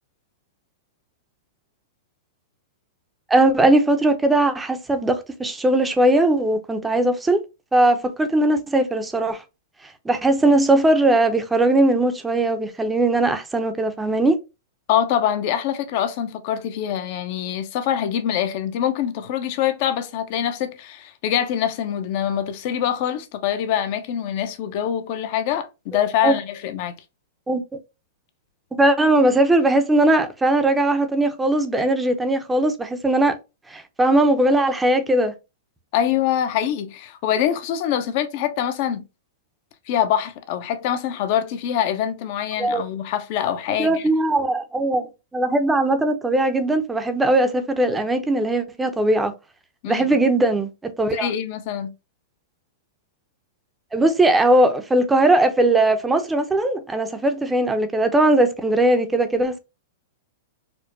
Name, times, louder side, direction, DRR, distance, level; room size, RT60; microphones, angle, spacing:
voice 1, 3.3-7.4 7.7-9.4 10.1-14.4 26.2-26.4 27.5-27.6 28.7-33.4 33.7-35.3 42.6-42.8 43.8-49.3 49.9-51.3 53.9-59.6, right 1 dB, 10° right, 0.5 m, -19 dB
voice 2, 14.9-26.9 35.9-39.0 39.9-44.1 49.8-50.1 51.1-51.9, left 10 dB, 50° left, 0.6 m, -24 dB
4.4 x 2.1 x 2.5 m
hypercardioid pair, 125°, 0 cm